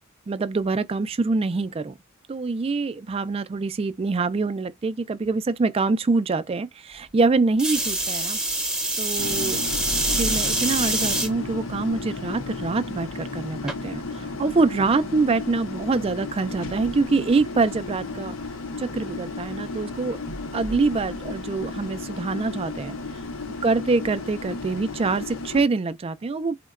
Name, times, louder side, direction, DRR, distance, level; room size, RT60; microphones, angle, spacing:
voice 1, 0.3-1.9 2.3-8.4 9.0-9.6 10.2-18.4 18.8-20.2 20.5-23.0 23.6-26.6, right 3 dB, 30° right, 0.3 m, -25 dB
sound 1, 7.6-11.3 11.9-12.4 13.7-13.8, right 2 dB, 5° right, 0.7 m, -25 dB
sound 2, 9.2-25.6, left 3 dB, 80° left, 0.7 m, -34 dB
3.7 x 2.1 x 2.3 m
head